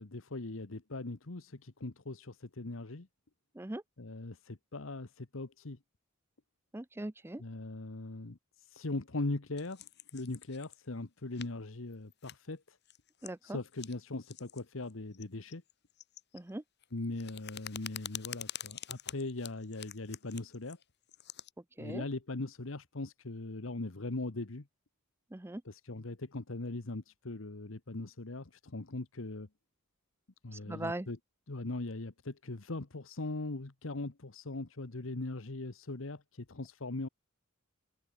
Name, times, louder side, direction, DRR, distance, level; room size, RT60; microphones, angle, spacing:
voice 1, 0.0-3.1 4.0-5.8 7.4-8.4 8.7-12.8 13.4-15.6 16.9-20.8 21.8-24.7 25.6-29.5 30.4-31.2 31.5-37.1, left 2 dB, 75° left, 1.2 m, -40 dB
voice 2, 6.7-7.4 13.2-13.6 16.3-16.6 21.8-22.0 25.3-25.6 30.5-31.1, right 1 dB, 10° right, 0.5 m, -40 dB
sound 1, 9.6-10.8 11.3-11.5 11.9-12.5 12.8-13.3 13.6-14.0 14.2-14.6 14.9-16.5 16.8-21.5, left 11 dB, 55° left, 3.1 m, -46 dB
head